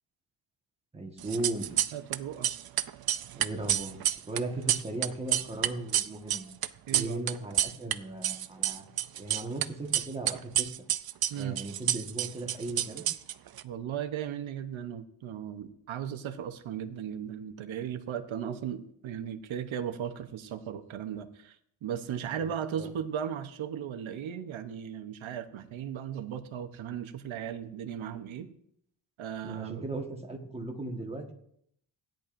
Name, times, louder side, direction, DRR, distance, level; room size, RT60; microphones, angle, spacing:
voice 1, 0.9-1.7 3.3-4.0 4.3-6.5 6.9-8.8 9.1-10.7 11.3-13.0 22.4-22.9 29.4-31.3, right 2 dB, 15° right, 1 dB, 1.4 m, -37 dB
sound 1, 1.2-2.2 2.4-7.9 8.2-9.6 9.9-13.6, right 12 dB, 55° right, 0.5 m, -29 dB
voice 2, 1.9-2.5 6.9-7.2 11.3-11.6 13.6-28.5 29.2-29.8, right 9 dB, 85° right, 9 dB, 0.9 m, -36 dB
16.5 x 10.5 x 2.6 m, 0.69 s
wide cardioid pair, 160°, 46 cm